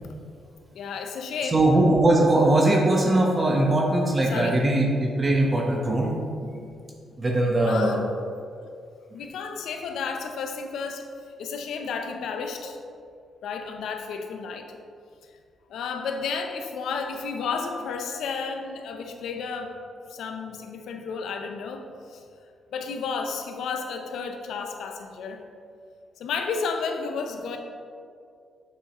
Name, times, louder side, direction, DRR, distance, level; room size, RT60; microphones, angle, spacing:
voice 1, 0.7-1.6 4.3-4.6 7.6-8.1 9.1-11.1 11.4-12.8 13.4-14.7 15.7-19.8 20.1-22.2 22.7-25.4 26.2-27.6, left 5 dB, 80° left, 5 dB, 0.7 m, -32 dB
voice 2, 1.4-6.5 7.2-8.0, right 1 dB, 30° right, -1 dB, 1.1 m, -21 dB
8.1 x 5.9 x 3.0 m, 2.3 s
cardioid pair, 80°, 0 cm